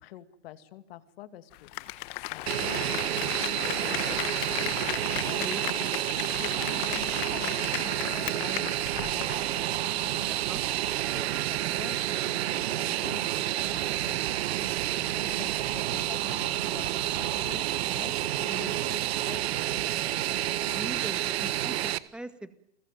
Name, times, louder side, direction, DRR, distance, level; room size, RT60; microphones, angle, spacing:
voice 1, 0.0-4.9 5.2-10.3 11.1-20.3, left 12 dB, 55° left, 11 dB, 2.4 m, -47 dB
Applause, 1.5-9.7 10.0-10.1, left 20 dB, 40° left, 1.5 m, -36 dB
Fixed-wing aircraft airplane, 2.5-22.0, right 14 dB, 65° right, 1.5 m, -29 dB
voice 2, 10.2-10.6 18.5-18.7 20.7-22.5, right 1 dB, 5° right, 11 dB, 1.9 m, -41 dB
30.0 x 21.5 x 9.2 m, 0.70 s
hypercardioid pair, 130°, 35 cm